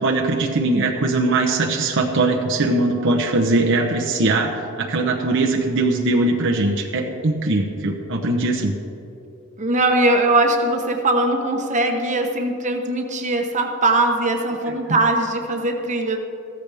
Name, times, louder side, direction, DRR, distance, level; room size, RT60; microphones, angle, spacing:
voice 1, 0.0-8.7 14.7-15.0, right 2 dB, 60° right, 1 dB, 0.9 m, -21 dB
voice 2, 9.6-16.2, right 2 dB, 35° right, 3 dB, 1.1 m, -20 dB
15.0 x 13.5 x 3.5 m, 2.8 s
head